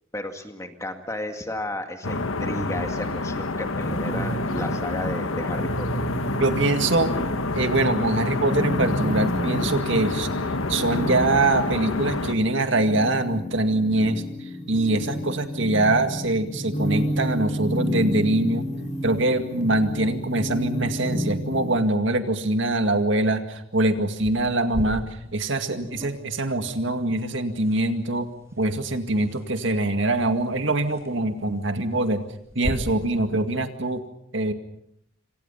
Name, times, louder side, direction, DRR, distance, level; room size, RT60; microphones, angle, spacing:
voice 1, 0.1-5.9, left 1 dB, 15° left, 6 dB, 2.1 m, -33 dB
sound 1, 2.0-12.3, left 2 dB, 80° left, 1.3 m, -28 dB
sound 2, 3.8-21.8, equal, 35° left, 5.2 m, -31 dB
voice 2, 6.4-7.1 7.6-10.3 10.7-14.2 14.7-18.6 19.0-25.0 25.3-28.3 28.6-32.3 32.6-34.0 34.3-34.5, right 2 dB, 60° right, 7 dB, 2.1 m, -23 dB
sound 3, 24.3-32.7, equal, 15° right, 4.8 m, -39 dB
27.0 x 26.0 x 5.7 m, 0.71 s
head